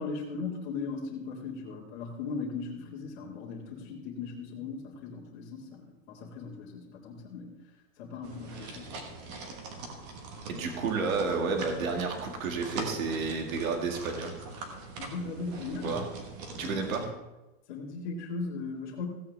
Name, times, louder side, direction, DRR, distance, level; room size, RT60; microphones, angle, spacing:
voice 1, 0.0-7.5 8.0-9.0 15.0-16.0 16.5-17.0 17.7-19.1, left 4 dB, 35° left, -5 dB, 2.1 m, -38 dB
sound 1, 8.2-17.0, right 3 dB, 30° right, 1.5 m, -42 dB
voice 2, 10.5-14.4 15.8-16.1 16.6-17.1, right 4 dB, 80° right, 3 dB, 2.2 m, -31 dB
16.0 x 8.8 x 3.5 m, 1.0 s
supercardioid pair, 180°, 41 cm